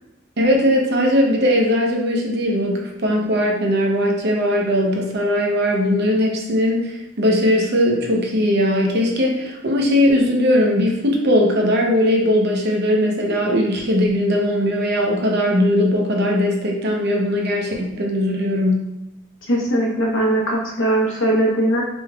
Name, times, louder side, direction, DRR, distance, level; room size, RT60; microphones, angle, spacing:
voice 1, 0.4-18.8, left 1 dB, 55° right, 0 dB, 0.8 m, -19 dB
voice 2, 19.5-21.8, right 1 dB, 65° left, -2 dB, 1.1 m, -19 dB
5.1 x 3.6 x 2.4 m, 0.94 s
head